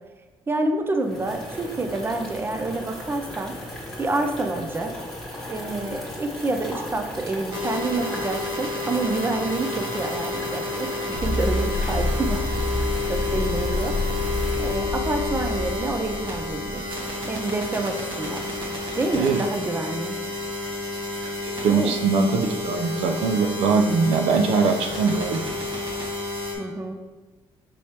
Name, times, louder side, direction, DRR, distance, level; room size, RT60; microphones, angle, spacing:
voice 1, 0.5-3.5 4.0-4.9 5.5-12.8 13.1-14.0 14.6-18.4 18.9-20.2 21.7-21.9 26.6-27.0, right 2 dB, 20° right, 5 dB, 0.5 m, -28 dB
sound 1, 1.0-14.8, left 1 dB, 5° left, 1.4 m, -37 dB
sound 2, 7.5-26.6, left 2 dB, 50° right, 1.2 m, -30 dB
sound 3, 11.1-17.3, left 1 dB, 70° left, 0.8 m, -28 dB
voice 2, 21.2-25.4, right 4 dB, 90° right, 5 dB, 0.4 m, -22 dB
5.4 x 3.1 x 2.9 m, 1.3 s
cardioid pair, 90°, 10 cm